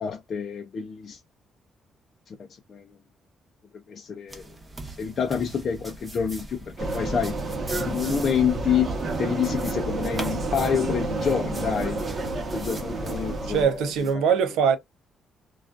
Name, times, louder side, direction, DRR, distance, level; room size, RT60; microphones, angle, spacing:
voice 1, 0.0-1.2 2.3-2.4 2.7-2.8 3.9-4.4 5.0-7.4 7.8-12.0 12.3-13.9 14.1-14.2, left 7 dB, 55° left, 0.4 m, -28 dB
sound 1, 4.3-14.1, right 2 dB, 20° right, 0.8 m, -42 dB
Vehicle, 6.8-13.7, right 3 dB, 45° right, 0.8 m, -30 dB
voice 2, 13.5-14.8, right 7 dB, 85° right, 0.6 m, -22 dB
2.4 x 2.3 x 2.3 m
cardioid pair, 90°, 0 cm